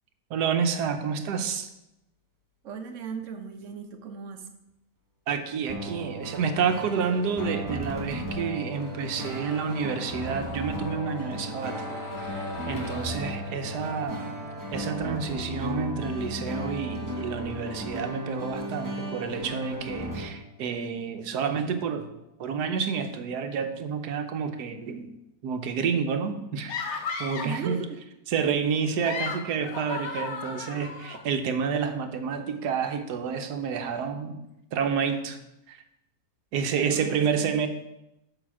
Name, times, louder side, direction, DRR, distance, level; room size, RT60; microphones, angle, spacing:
voice 1, 0.3-1.7 5.3-11.8 12.2-14.3 14.7-22.1 22.4-25.1 25.4-26.8 27.2-27.8 28.3-34.4 34.7-35.4 35.7-35.8 36.5-37.7, right 6 dB, 75° right, 8 dB, 1.3 m, -29 dB
voice 2, 2.6-4.5 27.4-28.0 36.9-37.6, right 6 dB, 55° right, 6 dB, 1.0 m, -37 dB
sound 1, 5.7-20.3, equal, 15° right, 0.8 m, -35 dB
sound 2, 8.8-20.6 20.9-21.0, left 3 dB, 20° left, 1.7 m, -43 dB
sound 3, 26.7-27.7 28.8-31.2, left 5 dB, 55° left, 0.9 m, -34 dB
6.9 x 5.0 x 6.0 m, 0.89 s
omnidirectional pair, 1.8 m